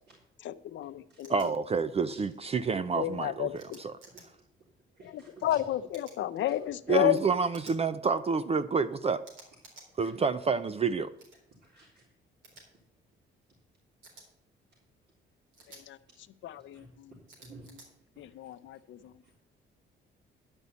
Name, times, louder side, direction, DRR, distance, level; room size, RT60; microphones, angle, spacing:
voice 1, 0.4-1.5 2.9-3.8 5.1-7.2 15.7-16.0 16.4-17.1 18.2-19.1, left 13 dB, 70° left, 0.6 m, -32 dB
sound 1, 1.2-1.5 3.6-4.2 5.9-6.2 7.5-7.8 9.2-9.9 11.2-11.4 12.4-12.6 14.0-14.3 15.5-15.8 17.3-17.9, right 2 dB, 80° right, 4.0 m, -53 dB
voice 2, 1.3-3.9 6.9-9.2 10.0-11.1, right 5 dB, 30° right, 0.5 m, -29 dB
voice 3, 4.9-5.6 6.5-6.6 6.9-7.0 10.0-10.1 11.6-12.1 16.5-16.9 17.4-17.8 18.2-19.4, right 3 dB, 60° right, 3.9 m, -54 dB
10.5 x 5.4 x 8.2 m
cardioid pair, 90°, 20 cm